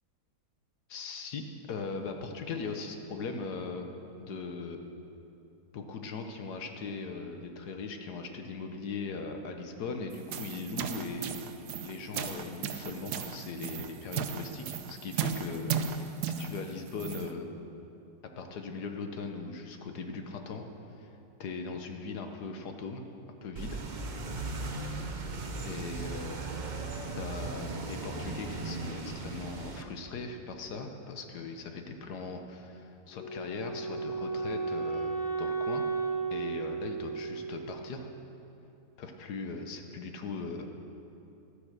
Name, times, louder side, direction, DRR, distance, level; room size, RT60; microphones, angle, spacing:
voice 1, 0.9-3.9 4.2-4.8 5.7-11.4 11.8-17.5 18.4-20.6 21.0-21.1 21.4-23.0 23.4-23.8 25.6-26.4 27.2-35.8 36.3-38.1 39.0-40.7, left 4 dB, 75° left, 5 dB, 1.5 m, -39 dB
sound 1, 10.1-17.3, right 7 dB, 80° right, 1.2 m, -36 dB
sound 2, 23.6-29.8, right 3 dB, 40° right, 0.7 m, -37 dB
Wind instrument woodwind instrument, 33.1-38.2, right 4 dB, 30° left, 2.9 m, -34 dB
12.5 x 9.9 x 6.6 m, 2.8 s
omnidirectional pair, 1.8 m